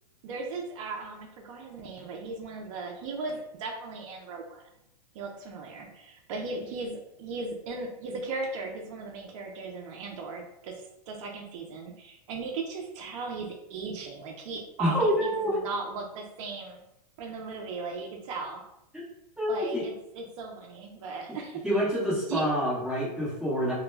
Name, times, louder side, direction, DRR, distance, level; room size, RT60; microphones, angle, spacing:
voice 1, 0.2-4.6 5.1-10.8 11.1-16.8 17.2-18.6 19.5-21.6 22.1-22.4, right 3 dB, 50° right, 1 dB, 0.5 m, -37 dB
voice 2, 14.8-15.6 18.9-19.0 19.4-19.8 21.6-23.7, equal, ahead, -10 dB, 1.1 m, -27 dB
2.2 x 2.1 x 3.2 m, 0.85 s
hypercardioid pair, 145°, 21 cm